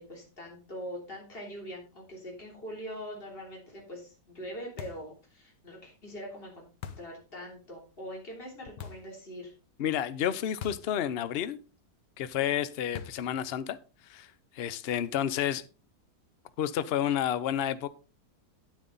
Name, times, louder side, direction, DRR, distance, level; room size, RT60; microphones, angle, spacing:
voice 1, 0.0-6.7 7.0-9.5, equal, 35° left, 3.5 m, -42 dB
sound 1, 4.8-5.2 6.8-7.2 8.8-9.1 10.6-11.0 11.2-11.3 12.9-13.3, left 8 dB, 90° left, 1.6 m, -42 dB
voice 2, 9.8-11.6 12.2-13.8 14.1-14.3 14.5-15.6 16.6-17.9, left 10 dB, 55° left, 0.7 m, -30 dB
9.4 x 9.3 x 3.9 m
omnidirectional pair, 1.8 m